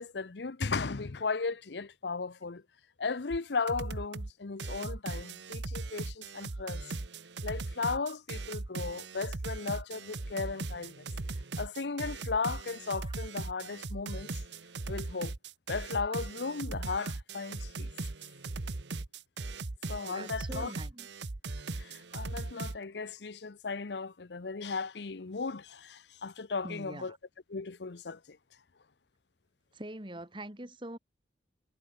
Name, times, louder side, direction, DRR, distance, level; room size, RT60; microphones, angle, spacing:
voice 1, 0.0-2.6 3.0-7.0 7.4-11.1 11.6-14.4 14.9-15.3 15.7-17.9 19.9-20.7 21.7-27.2 27.5-28.4, left 4 dB, 75° left, 0.8 m, -36 dB
sound 1, 3.3-3.4 3.7-4.3 4.6-22.8, right 3 dB, 85° right, 1.1 m, -39 dB
voice 2, 20.1-21.1 26.6-27.2 29.7-31.0, right 1 dB, 25° right, 2.6 m, -43 dB
head